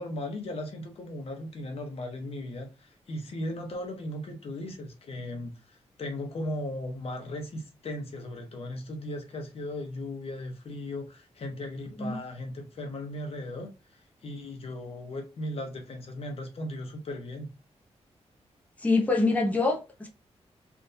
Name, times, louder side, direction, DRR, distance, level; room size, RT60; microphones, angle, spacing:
voice 1, 0.0-17.5, left 1 dB, 55° left, 1.0 m, -37 dB
voice 2, 18.8-20.1, left 3 dB, 10° left, 0.8 m, -25 dB
3.4 x 2.6 x 2.7 m
wide cardioid pair, 130°, 12 cm